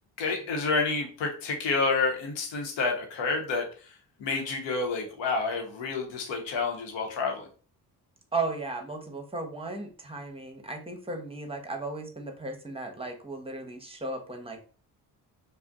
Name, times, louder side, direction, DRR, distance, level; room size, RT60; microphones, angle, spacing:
voice 1, 0.2-3.9 4.2-7.5, left 4 dB, 80° left, 2 dB, 0.9 m, -29 dB
voice 2, 8.3-14.6, right 3 dB, 15° right, 4 dB, 0.8 m, -35 dB
2.5 x 2.1 x 3.4 m, 0.39 s
supercardioid pair, 45°, 44 cm